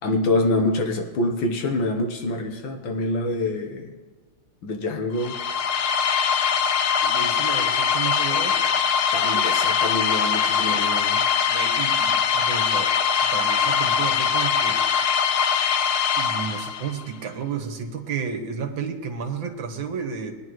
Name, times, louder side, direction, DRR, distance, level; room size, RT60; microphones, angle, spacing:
voice 1, 0.0-4.0 4.6-5.4 9.1-11.2, left 2 dB, 70° left, 4 dB, 1.8 m, -25 dB
sound 1, 5.2-17.0, left 7 dB, 90° left, 1.5 m, -22 dB
voice 2, 7.0-8.6 11.5-12.9 13.3-14.8 16.2-20.4, right 6 dB, 65° right, 4 dB, 1.9 m, -32 dB
20.0 x 10.5 x 3.1 m, 1.4 s
omnidirectional pair, 2.3 m